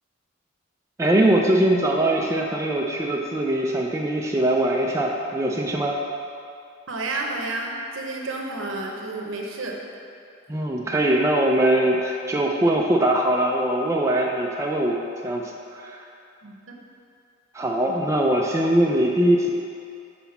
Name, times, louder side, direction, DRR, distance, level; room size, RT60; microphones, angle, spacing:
voice 1, 1.0-6.0 10.5-16.0 17.5-19.5, right 1 dB, 15° right, -1 dB, 0.4 m, -22 dB
voice 2, 6.9-9.8 16.4-16.8, right 2 dB, 70° right, 0 dB, 0.8 m, -31 dB
5.8 x 4.0 x 5.8 m, 2.5 s
head